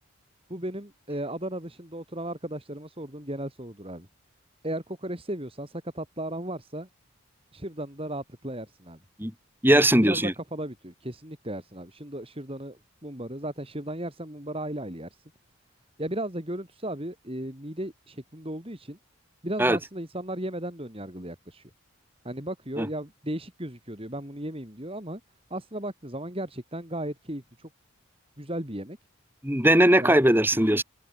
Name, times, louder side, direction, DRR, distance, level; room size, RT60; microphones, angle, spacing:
voice 1, 0.5-4.1 4.6-6.9 7.5-9.0 9.7-15.1 16.0-19.0 19.4-21.7 22.2-25.2 25.5-27.7 28.4-29.0 30.0-30.1, right 1 dB, 25° right, 4.0 m, -35 dB
voice 2, 9.6-10.3 19.6-19.8 22.8-22.9 29.4-30.8, right 1 dB, 10° right, 5.5 m, -19 dB
open air
head